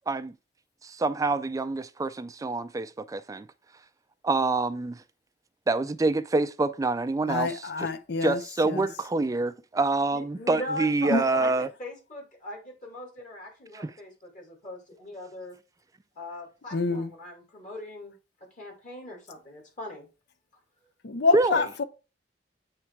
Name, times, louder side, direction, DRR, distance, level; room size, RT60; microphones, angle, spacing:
voice 1, 0.8-3.5 4.2-5.0 5.7-7.9 8.2-11.7 13.7-13.9 21.3-21.6, right 3 dB, 20° right, 0.3 m, -26 dB
voice 2, 7.3-8.4 8.7-8.8 11.1-11.2 16.7-17.1 21.0-21.8, left 3 dB, 65° left, 0.6 m, -26 dB
voice 3, 10.1-15.6 16.1-18.1 18.6-20.1, left 1 dB, 45° left, 2.6 m, -39 dB
8.4 x 3.3 x 4.6 m
head